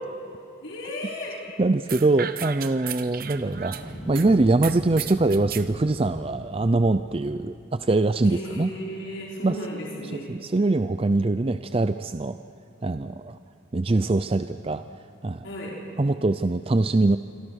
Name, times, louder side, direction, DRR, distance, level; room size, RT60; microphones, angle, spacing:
voice 1, 0.6-1.4 8.2-10.3 15.4-15.7, equal, 70° left, -3 dB, 5.0 m, -34 dB
voice 2, 1.6-8.7 9.4-9.6 10.0-12.4 12.8-13.4 13.7-14.8 15.2-15.5 16.0-17.2, right 2 dB, 30° right, 11 dB, 0.5 m, -23 dB
sound 1, 1.9-4.3 4.6-5.7, right 9 dB, 50° right, 1.0 m, -35 dB
sound 2, 3.0-7.8, equal, 35° left, 7.3 m, -41 dB
27.0 x 24.0 x 6.4 m, 2.8 s
head